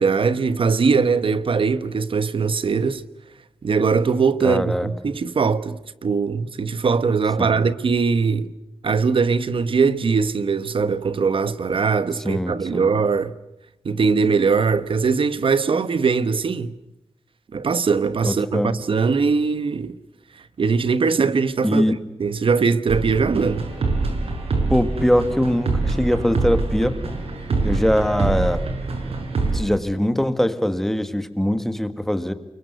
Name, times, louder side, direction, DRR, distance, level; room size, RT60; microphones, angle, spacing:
voice 1, 0.0-3.0 3.6-8.5 8.8-13.3 13.8-16.7 17.5-20.0 20.6-21.8 22.2-23.7, right 5 dB, 65° right, 1.3 m, -21 dB
voice 2, 4.4-4.9 7.4-7.7 12.2-12.9 18.2-18.7 21.6-21.9 24.7-26.9 27.6-28.6 29.5-32.3, equal, 5° left, 1.7 m, -22 dB
sound 1, 22.9-29.6, right 3 dB, 90° right, 6.5 m, -25 dB
29.5 x 23.5 x 8.1 m
wide cardioid pair, 155°, 10 cm